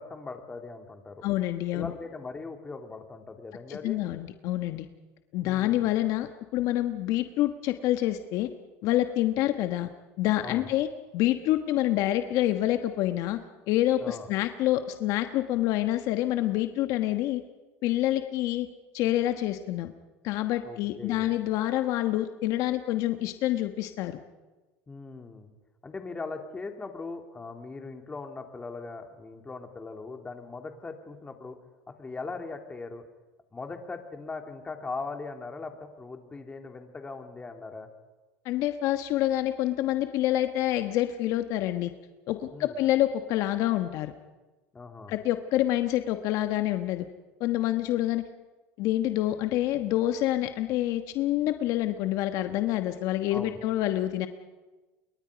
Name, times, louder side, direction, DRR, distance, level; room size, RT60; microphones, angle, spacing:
voice 1, 0.0-1.2 1.7-4.0 5.4-6.0 10.4-10.7 14.0-14.3 20.6-21.3 24.9-25.5 25.8-31.6 31.9-33.0 33.5-37.9 42.5-42.7 44.7-45.1 53.3-53.6, left 3 dB, 20° left, 4 dB, 3.2 m, -40 dB
voice 2, 1.2-1.9 3.7-4.9 5.3-8.5 8.8-9.9 10.2-10.9 11.1-13.4 13.7-17.4 17.8-18.7 18.9-19.9 20.2-24.2 38.4-41.9 42.3-44.1 45.1-47.0 47.4-48.2 48.8-54.3, left 14 dB, 60° left, 7 dB, 1.3 m, -27 dB
28.5 x 23.0 x 5.2 m, 1.2 s
supercardioid pair, 105°, 6 cm